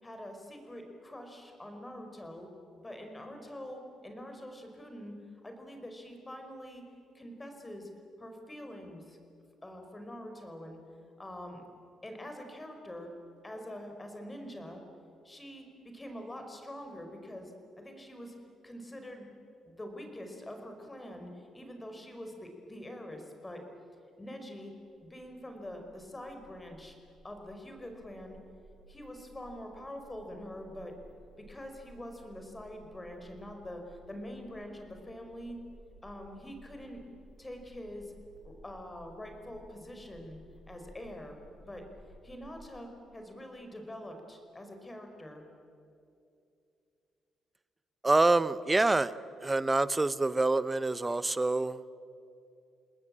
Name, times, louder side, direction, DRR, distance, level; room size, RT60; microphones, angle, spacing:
voice 1, 0.0-2.5 2.8-5.1 5.4-6.8 7.1-7.9 8.2-9.2 9.6-10.8 11.2-11.6 12.0-13.1 13.4-14.8 15.2-18.3 18.6-19.3 19.6-23.6 24.2-24.7 25.0-26.9 27.2-28.4 28.9-30.9 31.4-35.6 36.0-37.0 37.4-38.1 38.4-40.4 40.7-41.4 41.7-41.8 42.2-45.4, left 1 dB, 15° left, 4 dB, 4.8 m, -45 dB
sound 1, 24.9-42.8, right 1 dB, 35° right, 3.8 m, -57 dB
voice 2, 48.0-49.1 49.4-52.0, right 2 dB, 20° right, 16 dB, 0.8 m, -26 dB
28.5 x 19.5 x 8.8 m, 2.6 s
cardioid pair, 90°, 0 cm